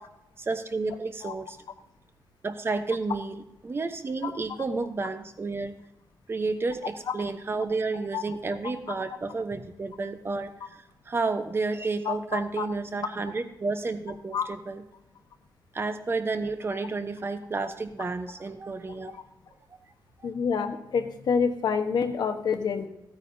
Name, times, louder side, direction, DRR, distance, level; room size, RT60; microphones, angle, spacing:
voice 1, 0.4-1.6 2.4-5.8 6.3-14.8 15.7-19.2, right 3 dB, 30° right, 8 dB, 1.0 m, -31 dB
voice 2, 12.0-12.7 14.3-14.4 20.2-22.9, left 6 dB, 75° left, 6 dB, 1.2 m, -27 dB
15.0 x 9.1 x 2.7 m, 0.88 s
wide cardioid pair, 115°, 7 cm